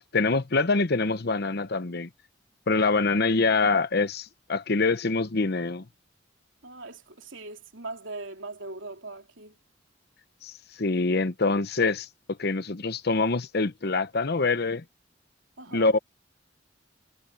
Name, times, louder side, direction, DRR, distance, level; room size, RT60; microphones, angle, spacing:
voice 1, 0.0-2.1 2.7-5.8 10.4-14.8 15.7-16.0, left 3 dB, 55° left, 0.9 m, -25 dB
voice 2, 6.6-9.5 15.6-15.9, right 3 dB, 80° right, 3.3 m, -40 dB
head